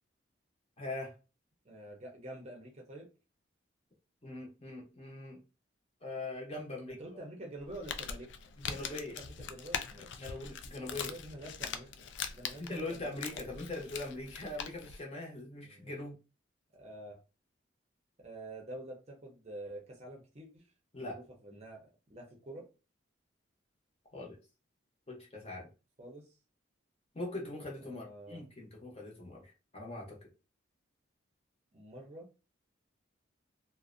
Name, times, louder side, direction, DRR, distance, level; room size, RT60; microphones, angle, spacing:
voice 1, 0.8-1.1 4.2-5.4 6.0-7.0 8.6-9.2 10.2-11.1 12.6-16.2 20.9-21.2 24.1-24.4 25.1-25.7 27.1-30.3, left 2 dB, 30° left, -2 dB, 0.7 m, -42 dB
voice 2, 1.6-3.1 6.9-8.3 8.7-10.1 10.8-12.1 12.3-13.5 15.6-15.9 16.7-17.2 18.2-20.7 21.0-22.7 26.0-26.3 27.8-28.4 31.7-32.3, right 1 dB, 35° right, 0 dB, 0.6 m, -48 dB
Crumpling crinkling, 7.6-15.0, left 7 dB, 70° left, 0.3 m, -42 dB
2.5 x 2.0 x 2.4 m, 0.31 s
head